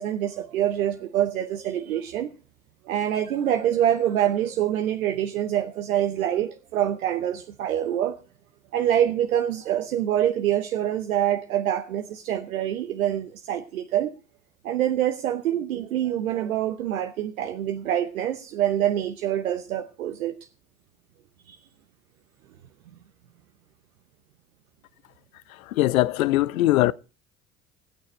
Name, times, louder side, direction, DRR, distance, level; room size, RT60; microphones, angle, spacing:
voice 1, 0.0-2.3 2.9-8.2 8.7-14.1 14.6-20.4 21.5-21.6, right 11 dB, 80° right, 1.0 m, -25 dB
voice 2, 25.7-26.9, left 16 dB, 80° left, 0.7 m, -21 dB
20.0 x 8.9 x 4.4 m
hypercardioid pair, 60°, 41 cm